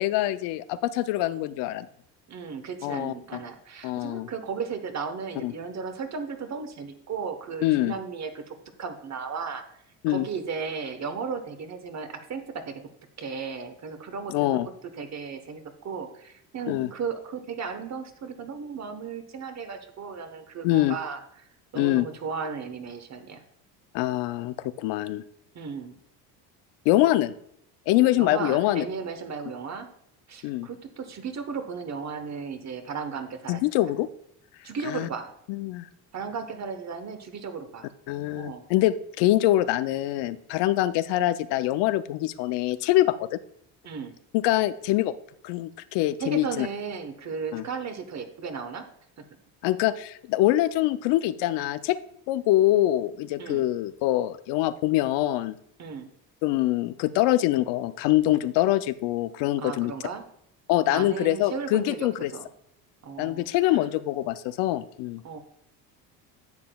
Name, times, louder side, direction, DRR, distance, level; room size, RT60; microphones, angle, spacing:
voice 1, 0.0-1.9 2.8-3.1 3.8-4.3 5.4-5.5 7.6-7.9 10.0-10.3 14.3-14.7 16.7-16.9 20.6-21.0 21.8-22.1 23.9-25.2 26.9-27.3 27.9-28.8 30.4-30.7 33.5-34.1 34.9-35.1 35.5-35.9 38.1-43.3 44.4-45.1 45.4-46.7 47.5-47.6 49.6-52.0 52.3-55.5 56.4-59.9 60.7-62.3 63.2-65.2, left 15 dB, 70° left, 14 dB, 0.5 m, -24 dB
voice 2, 2.3-9.6 10.1-12.9 13.2-21.2 21.7-23.4 25.5-26.0 28.2-29.9 30.3-33.6 34.6-35.3 36.1-37.9 38.4-38.6 43.8-44.1 46.2-48.9 49.2-49.3 53.4-53.6 55.8-56.1 59.6-60.2 60.9-62.5 63.0-63.8 65.2-65.4, right 5 dB, 40° right, 8 dB, 1.1 m, -35 dB
10.5 x 7.5 x 2.3 m, 0.71 s
supercardioid pair, 95°, 43 cm